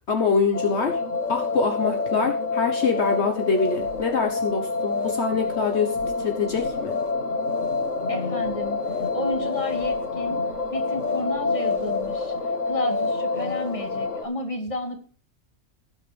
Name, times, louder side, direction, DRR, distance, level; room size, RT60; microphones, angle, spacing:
voice 1, 0.1-1.0 1.3-7.0, left 5 dB, 60° left, 4 dB, 1.5 m, -24 dB
sound 1, 0.5-14.2, left 3 dB, 80° left, 2.0 m, -28 dB
sound 2, 1.2-2.3 2.9-3.2 3.5-4.1 4.9-5.2 5.5-6.0 6.8-7.2 7.4-8.1 8.8-9.2 9.4-10.1 11.0-11.3 11.5-12.3 12.9-13.9, left 6 dB, 45° left, 0.6 m, -33 dB
voice 2, 8.1-8.8 9.1-10.4 10.7-12.3 12.7-15.0, left 1 dB, 25° left, 4 dB, 2.3 m, -32 dB
17.0 x 8.1 x 3.4 m, 0.41 s
omnidirectional pair, 1.3 m